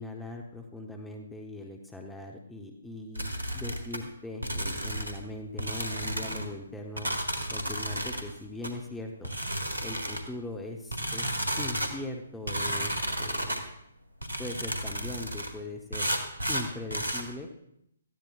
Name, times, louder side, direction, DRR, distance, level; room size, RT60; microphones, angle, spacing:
voice 1, 0.0-7.1 7.5-9.3 9.8-13.6 14.4-16.1 16.5-17.5, left 1 dB, 5° left, 2 dB, 0.9 m, -40 dB
sound 1, 3.1-4.0 4.4-5.2 5.6-6.4 7.0-8.2 8.6-8.7 9.2-10.3 10.9-11.9 12.5-13.6 14.2-15.5 15.9-17.2, right 1 dB, 75° right, 1.6 m, -32 dB
18.0 x 13.5 x 2.4 m, 0.76 s
figure-of-eight pair, 130°, 0 cm